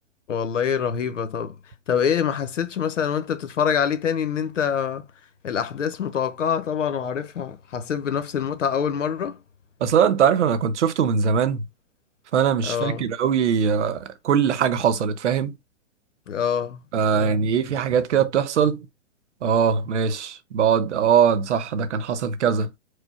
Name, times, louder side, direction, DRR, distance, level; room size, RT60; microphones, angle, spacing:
voice 1, 0.3-1.5 1.9-5.1 5.4-9.4 12.6-13.0 16.3-16.8 17.1-17.5 22.5-22.6, left 7 dB, 85° left, 1.0 m, -25 dB
voice 2, 9.8-11.6 12.3-14.0 14.2-15.5 16.9-18.8 19.4-22.7, right 7 dB, 70° right, 1.0 m, -21 dB
4.9 x 2.3 x 4.3 m
hypercardioid pair, 140°, 37 cm